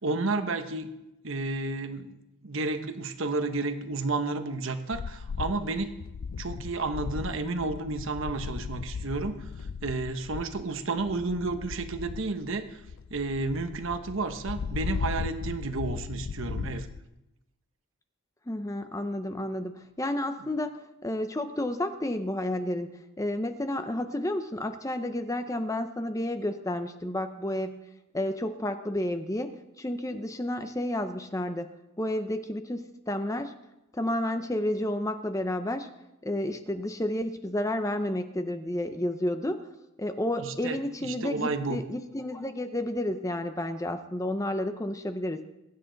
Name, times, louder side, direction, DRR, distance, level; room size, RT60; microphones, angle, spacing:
voice 1, 0.0-0.9 1.2-2.2 2.4-5.9 6.4-9.4 9.8-12.8 13.1-16.9 40.4-41.8, right 3 dB, 60° right, 8 dB, 1.1 m, -31 dB
sound 1, 4.9-17.0, left 5 dB, 70° left, 0.4 m, -37 dB
voice 2, 18.5-27.9 28.1-31.7 32.0-33.6 33.9-35.9 36.2-39.6 40.0-45.4, left 1 dB, 15° left, 8 dB, 0.6 m, -31 dB
22.0 x 10.0 x 4.0 m, 0.93 s
head